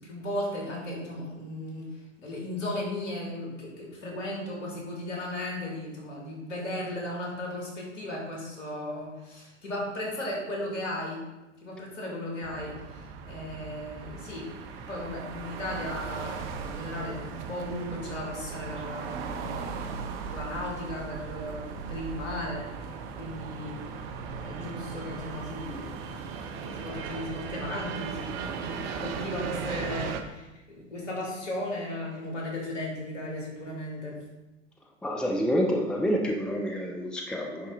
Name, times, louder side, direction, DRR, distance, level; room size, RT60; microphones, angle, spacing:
voice 1, 0.0-1.9 2.2-11.2 11.6-14.5 14.8-22.8 23.2-23.8 24.2-26.1 26.8-34.2, left 1 dB, 70° left, -2 dB, 2.7 m, -36 dB
sound 1, 12.4-30.2, right 5 dB, 50° right, 0.9 m, -37 dB
voice 2, 35.0-37.7, equal, ahead, 1 dB, 0.7 m, -28 dB
9.8 x 4.2 x 3.9 m, 1.0 s
figure-of-eight pair, 95°, 39 cm